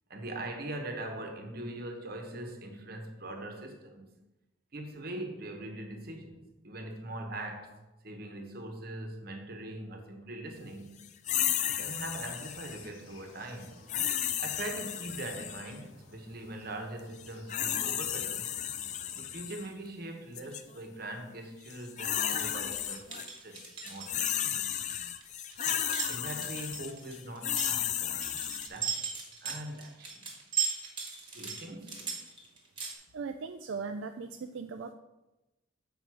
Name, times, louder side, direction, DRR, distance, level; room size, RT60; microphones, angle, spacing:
voice 1, 0.1-4.1 4.7-11.1 11.8-13.8 14.4-18.5 19.1-24.8 25.9-28.2 28.7-29.1 29.4-30.3 31.3-32.2, right 1 dB, 45° right, 4 dB, 1.0 m, -42 dB
sound 1, 11.3-12.9 13.9-15.8 17.2-19.6 20.4-20.6 21.7-23.3 23.6-28.7, left 10 dB, 35° left, 0.3 m, -33 dB
sound 2, 11.6-19.2, left 2 dB, 90° left, 1.6 m, -57 dB
sound 3, 22.2-32.9, right 6 dB, 25° right, 1.3 m, -38 dB
voice 2, 33.1-34.9, right 5 dB, 70° right, 6 dB, 0.4 m, -38 dB
7.6 x 5.2 x 4.7 m, 1.0 s
head